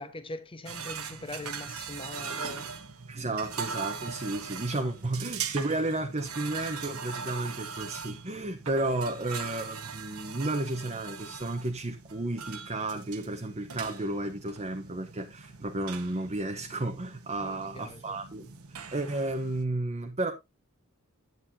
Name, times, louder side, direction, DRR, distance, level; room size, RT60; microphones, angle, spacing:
voice 1, 0.0-2.8 4.7-4.9 9.1-9.2 17.4-18.2, left 2 dB, 25° left, 1.1 m, -42 dB
sound 1, 0.7-19.6, right 6 dB, 75° right, 1.3 m, -40 dB
voice 2, 3.1-18.5 18.9-20.3, right 2 dB, 30° right, 1.0 m, -32 dB
10.0 x 9.4 x 2.7 m
head